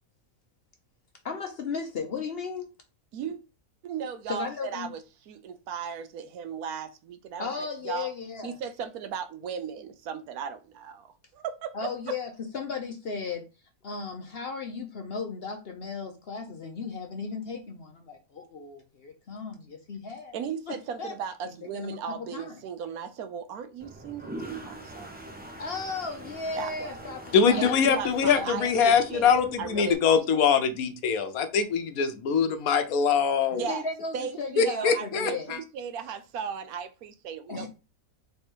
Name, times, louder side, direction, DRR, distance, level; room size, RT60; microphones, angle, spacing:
voice 1, 1.2-2.7 4.3-4.9 7.4-8.6 11.7-13.4 13.8-20.4 20.7-21.1 21.7-22.6 25.6-27.8 28.3-28.5 33.7-35.5 37.5-37.7, left 4 dB, 55° left, 0.7 m, -35 dB
voice 2, 3.8-8.1 8.4-11.1 11.3-11.9 20.3-25.3 26.5-27.1 27.6-30.0 30.3-30.4 33.5-33.9 34.1-37.7, right 7 dB, 75° right, 1.1 m, -36 dB
Toilet flush, 23.8-29.9, right 1 dB, 15° right, 0.3 m, -44 dB
voice 3, 27.3-33.6 34.6-35.6, left 6 dB, 70° left, 1.1 m, -23 dB
3.3 x 3.3 x 4.4 m
omnidirectional pair, 1.6 m